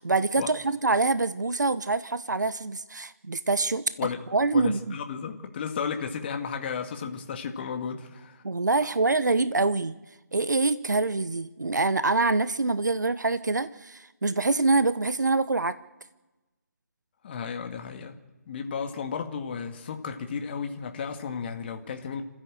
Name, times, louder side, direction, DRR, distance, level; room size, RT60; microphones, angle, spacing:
voice 1, 0.0-3.8 4.3-4.9 8.4-10.0 10.3-15.8, right 3 dB, 90° right, 0.9 m, -25 dB
voice 2, 4.5-8.4 17.2-18.1 18.5-22.2, left 6 dB, 35° left, 2.1 m, -33 dB
27.0 x 15.0 x 7.6 m
figure-of-eight pair, 155°, 9 cm